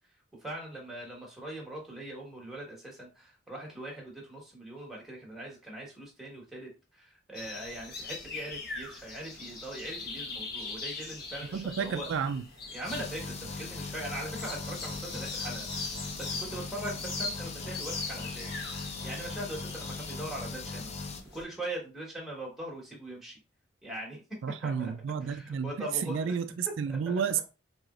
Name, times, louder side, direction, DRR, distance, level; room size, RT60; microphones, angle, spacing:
voice 1, 0.4-12.1 12.7-20.9 21.3-23.4 23.8-24.2 24.6-24.9 25.2-26.4 26.9-27.2, right 1 dB, ahead, 1.3 m, -41 dB
sound 1, 7.3-21.4, left 3 dB, 50° left, 1.2 m, -41 dB
voice 2, 11.5-12.4 24.4-27.4, right 6 dB, 75° right, 0.3 m, -31 dB
sound 2, 12.8-21.2, left 3 dB, 35° left, 0.5 m, -39 dB
4.7 x 2.9 x 2.4 m
head